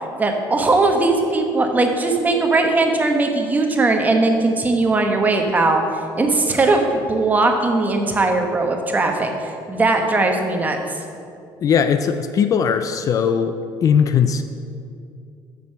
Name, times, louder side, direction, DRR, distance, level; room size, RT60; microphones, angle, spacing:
voice 1, 0.2-11.0, right 2 dB, 20° right, 3 dB, 1.0 m, -19 dB
voice 2, 11.6-13.5 13.8-14.4, left 7 dB, 45° left, 9 dB, 0.4 m, -18 dB
7.0 x 6.3 x 6.6 m, 2.4 s
cardioid pair, 135°, 8 cm